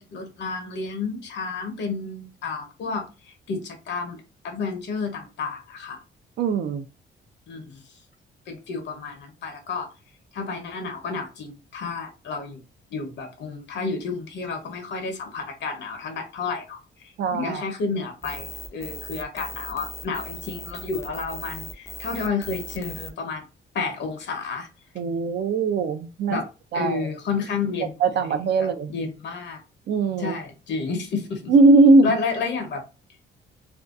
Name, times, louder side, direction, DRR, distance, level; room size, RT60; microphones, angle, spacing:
voice 1, 0.0-6.0 7.5-7.8 8.5-9.9 10.3-12.6 12.9-23.4 23.7-24.7 26.3-26.5 26.7-28.0 28.6-29.6 30.2-31.5 32.0-32.8, left 4 dB, 60° left, 0.8 m, -31 dB
voice 2, 6.4-6.9 17.2-17.6 25.0-26.4 26.7-27.1 28.0-28.9 29.9-30.3 31.5-32.2, right 3 dB, 60° right, 0.4 m, -19 dB
sound 1, 18.2-23.1, left 2 dB, 15° left, 0.4 m, -38 dB
2.6 x 2.2 x 2.3 m
cardioid pair, 90°, 20 cm